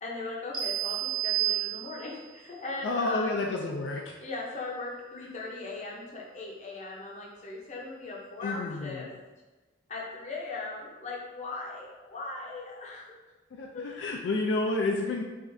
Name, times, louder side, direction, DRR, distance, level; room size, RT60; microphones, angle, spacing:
voice 1, 0.0-3.3 4.2-9.1 9.9-13.1 13.7-14.1, left 3 dB, 35° left, -2 dB, 0.6 m, -39 dB
sound 1, 0.5-2.3, right 13 dB, 25° right, 0.4 m, -30 dB
voice 2, 2.8-4.0 8.4-9.1 13.5-15.2, left 2 dB, 70° left, 1 dB, 0.4 m, -30 dB
4.9 x 2.4 x 2.6 m, 1.2 s
head